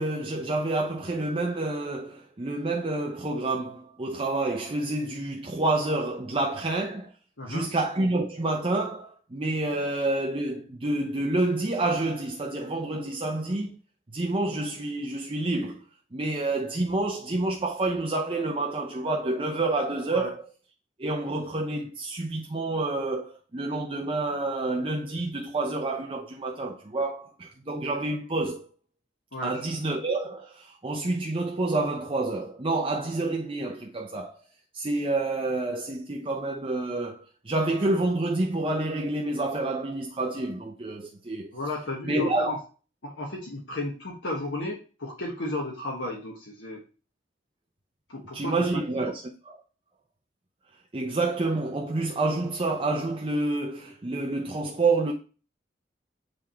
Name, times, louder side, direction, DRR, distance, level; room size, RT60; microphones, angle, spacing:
voice 1, 0.0-7.1 7.5-13.8 14.1-15.8 16.1-20.4 21.0-28.7 29.4-34.4 34.7-41.5 42.1-42.6 48.3-49.6 50.9-55.1, right 2 dB, 30° right, 0.7 m, -28 dB
voice 2, 7.4-7.7 20.1-20.3 29.3-29.6 41.5-42.6 43.0-46.8 48.1-48.5 48.9-49.0, left 2 dB, 85° left, 1.4 m, -33 dB
7.9 x 3.6 x 4.4 m
head